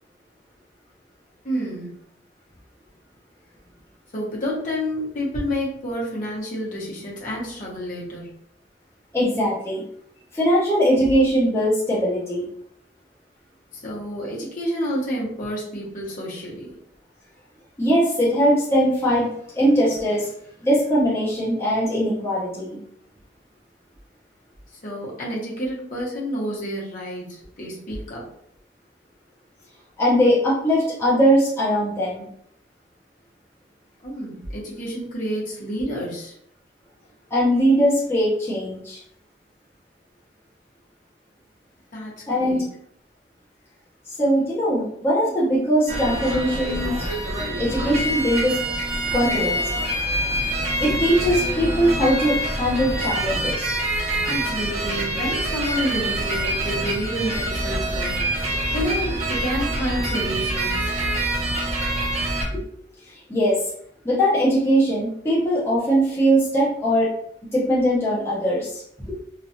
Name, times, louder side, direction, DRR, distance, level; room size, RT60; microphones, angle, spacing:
voice 1, 1.4-1.9 4.1-8.3 13.7-16.7 24.8-28.2 34.0-36.3 41.9-42.6 54.2-58.4 58.7-60.9, equal, 50° left, -5 dB, 1.1 m, -29 dB
voice 2, 9.1-9.8 10.3-12.5 17.8-20.3 20.6-22.8 30.0-32.3 37.3-39.0 42.3-42.7 44.2-47.1 47.6-48.6 49.1-49.6 50.8-53.8 62.5-62.6 63.1-63.6 64.0-67.1 67.5-69.2, equal, 15° left, -8 dB, 0.7 m, -21 dB
sound 1, 45.9-62.4, right 1 dB, 40° right, 0.8 m, -25 dB
3.1 x 2.4 x 2.6 m, 0.67 s
head